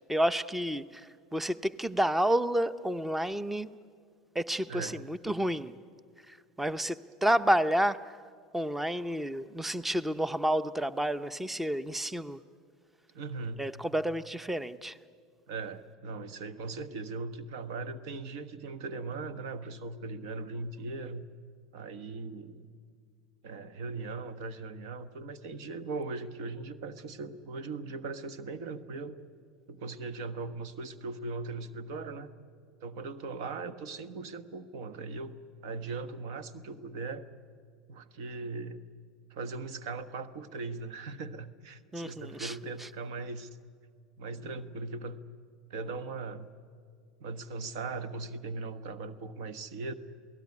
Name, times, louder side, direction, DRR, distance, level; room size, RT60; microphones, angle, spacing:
voice 1, 0.1-3.7 4.3-5.7 6.3-8.2 8.5-12.4 13.6-15.0 41.9-42.9, right 1 dB, 5° right, 16 dB, 0.7 m, -30 dB
voice 2, 4.7-5.1 13.1-13.6 15.5-21.2 21.7-22.8 23.4-29.2 29.7-32.3 32.8-35.3 35.6-37.2 37.9-38.8 39.3-43.5 44.2-45.2 45.7-46.5 47.2-49.9, right 3 dB, 75° right, 12 dB, 1.4 m, -39 dB
28.0 x 18.0 x 9.7 m, 2.1 s
hypercardioid pair, 95°, 3 cm